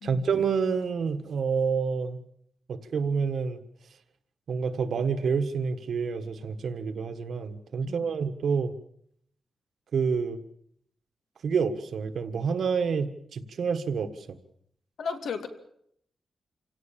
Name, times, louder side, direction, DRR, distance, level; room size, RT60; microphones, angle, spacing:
voice 1, 0.0-2.2 2.7-3.6 4.5-8.7 9.9-10.4 11.4-14.4, right 5 dB, 65° right, 10 dB, 1.6 m, -28 dB
voice 2, 7.8-8.1 15.0-15.5, left 5 dB, 75° left, 7 dB, 2.4 m, -34 dB
27.0 x 17.0 x 7.5 m, 0.70 s
wide cardioid pair, 180°, 0 cm